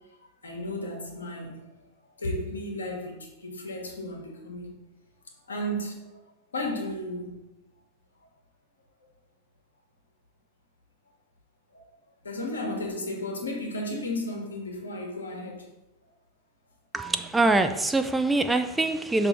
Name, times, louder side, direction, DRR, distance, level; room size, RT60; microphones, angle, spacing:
voice 1, 0.4-1.6 2.2-4.7 5.5-6.2 6.5-7.3 11.7-11.8 12.2-15.7, left 1 dB, 75° left, 0 dB, 1.4 m, -34 dB
voice 2, 16.9-19.3, right 2 dB, 10° right, 8 dB, 0.4 m, -24 dB
5.9 x 3.3 x 5.8 m, 1.0 s
figure-of-eight pair, 90°, 0 cm